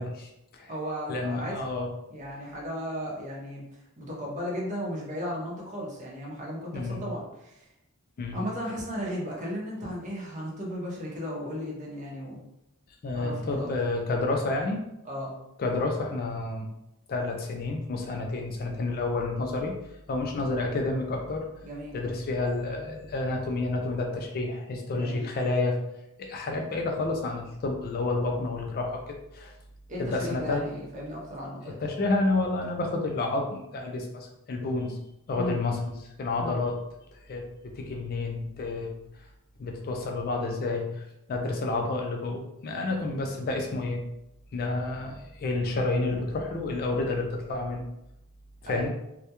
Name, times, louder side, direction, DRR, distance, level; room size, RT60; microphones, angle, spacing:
voice 1, 0.0-0.7 1.1-1.9 6.7-7.0 8.2-8.4 13.0-14.8 15.6-16.7 17.1-19.7 20.1-21.5 21.9-25.8 26.2-29.5 30.0-30.6 31.8-35.0 35.3-36.8 37.3-39.0 39.6-44.0 44.5-47.9 48.6-48.9, left 2 dB, 40° left, 2 dB, 0.3 m, -30 dB
voice 2, 0.7-1.5 2.1-3.6 4.0-7.7 8.3-12.4 13.1-13.7 15.0-15.3 21.6-21.9 24.9-25.2 29.9-31.8 35.3-35.6 36.4-36.6 48.7-48.9, equal, 35° right, -3 dB, 0.7 m, -35 dB
2.2 x 2.1 x 2.8 m, 0.86 s
head